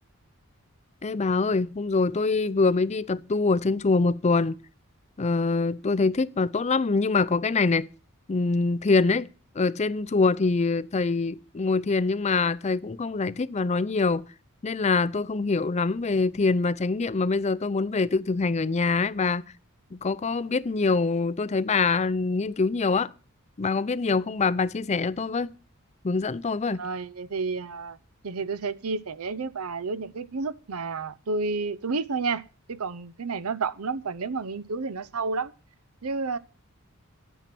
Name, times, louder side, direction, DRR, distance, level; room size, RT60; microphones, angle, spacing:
voice 1, 1.0-4.6 5.2-7.9 8.3-9.3 9.5-14.2 14.6-19.4 19.9-23.1 23.6-25.5 26.0-26.8, left 4 dB, 30° left, 0.5 m, -24 dB
voice 2, 26.8-28.0 28.2-32.4 32.7-35.5 36.0-36.4, right 4 dB, 80° right, 0.7 m, -30 dB
11.0 x 9.1 x 6.0 m
head